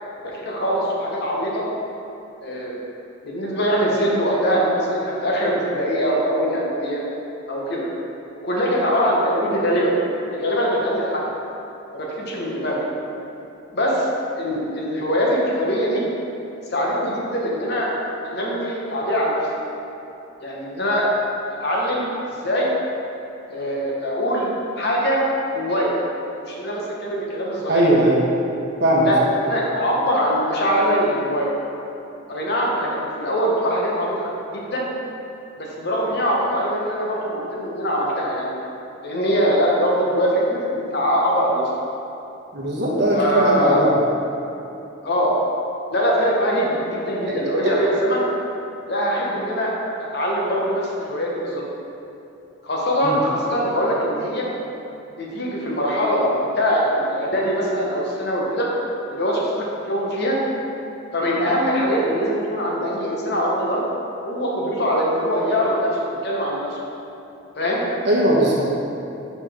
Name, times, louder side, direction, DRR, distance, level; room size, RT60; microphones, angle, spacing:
voice 1, 0.3-1.6 2.4-2.8 3.2-7.0 7.5-7.9 8.4-9.9 10.3-11.2 11.9-12.9 13.7-14.1 14.4-16.0 16.7-17.9 18.2-19.5 20.4-21.1 21.6-22.1 22.4-22.7 23.5-25.2 25.5-25.9 26.4-27.9 29.0-31.5 32.3-34.9 35.6-38.5 39.0-41.7 43.1-43.9 45.0-45.3 45.9-48.2 48.9-49.7 50.0-51.6 52.6-54.5 55.2-58.7 59.1-60.4 61.1-63.8 64.2-66.7 67.6-67.8, equal, 55° left, -3 dB, 0.9 m, -22 dB
voice 2, 27.7-28.2 28.8-29.3 42.5-44.0 47.3-47.5 53.0-53.3 68.0-68.5, right 1 dB, 60° right, -5 dB, 1.1 m, -19 dB
5.2 x 5.2 x 3.5 m, 2.9 s
head